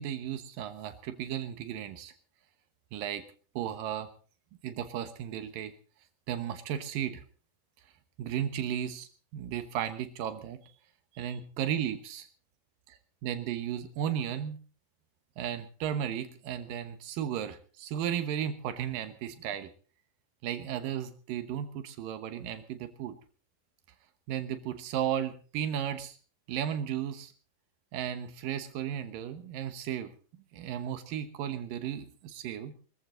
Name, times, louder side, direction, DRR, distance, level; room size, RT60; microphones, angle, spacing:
voice 1, 0.0-2.1 2.9-3.2 3.6-4.1 4.6-5.7 6.3-7.2 8.2-10.7 11.1-12.3 12.9-13.0 13.2-14.6 15.4-19.7 20.4-23.2 24.3-26.2 26.5-27.3 27.9-30.1 30.5-32.7, right 10 dB, 85° right, 9 dB, 2.8 m, -34 dB
22.5 x 14.5 x 3.9 m, 0.40 s
omnidirectional pair, 3.9 m